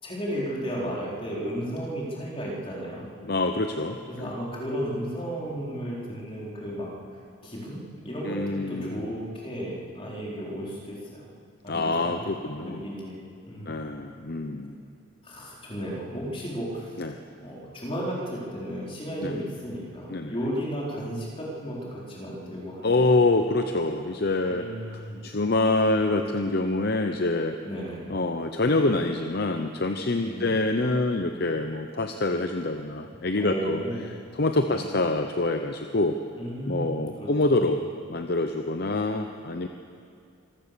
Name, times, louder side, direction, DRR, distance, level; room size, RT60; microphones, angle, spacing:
voice 1, 0.0-3.1 4.1-6.9 7.4-11.3 11.6-12.2 12.5-13.2 13.4-13.8 14.6-14.8 15.2-17.0 17.4-23.0 24.5-25.2 27.6-28.0 30.2-30.5 33.3-34.1 34.7-34.8 36.4-37.7, equal, 25° left, -4 dB, 4.3 m, -34 dB
voice 2, 3.2-4.3 8.3-9.1 11.7-12.8 13.7-14.7 17.0-17.2 19.2-19.4 20.1-20.3 22.8-27.6 28.1-33.8 34.4-36.2 36.7-37.8 38.1-39.7, left 2 dB, 50° left, 6 dB, 0.8 m, -26 dB
25.0 x 15.5 x 6.9 m, 2.3 s
head